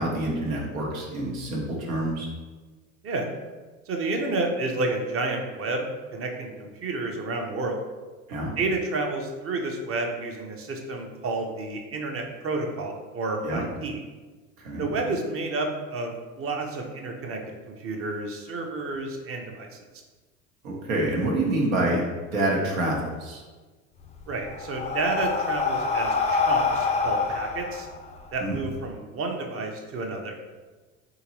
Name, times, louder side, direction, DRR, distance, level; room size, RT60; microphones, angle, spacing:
voice 1, 0.0-2.3 8.3-8.5 13.4-13.6 14.6-14.8 20.6-22.0 22.3-23.4 28.4-28.6, right 1 dB, 80° right, -2 dB, 1.1 m, -27 dB
voice 2, 3.9-7.8 8.6-14.0 14.8-19.8 24.3-27.9 28.3-30.4, right 2 dB, 35° right, 2 dB, 0.7 m, -30 dB
Breathing, 24.0-28.7, left 4 dB, 15° left, 0.4 m, -26 dB
3.7 x 2.9 x 3.0 m, 1.3 s
hypercardioid pair, 75°, 40 cm